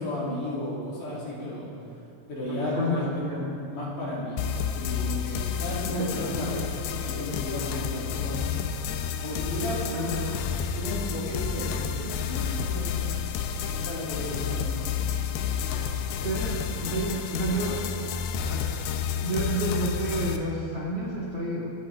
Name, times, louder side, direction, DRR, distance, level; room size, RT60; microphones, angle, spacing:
voice 1, 0.0-1.7 2.3-4.4 4.6-8.4 9.2-10.2 10.7-13.0 13.7-14.7 15.2-15.4, left 1 dB, 45° left, -7 dB, 4.4 m, -33 dB
voice 2, 2.5-3.1 5.9-6.2 9.9-10.1 16.2-17.8 18.4-18.7 19.2-21.7, right 1 dB, 45° right, -6 dB, 2.2 m, -30 dB
sound 1, 4.4-20.4, left 7 dB, 85° left, 2.2 m, -30 dB
28.0 x 11.0 x 3.7 m, 2.7 s
omnidirectional pair, 5.4 m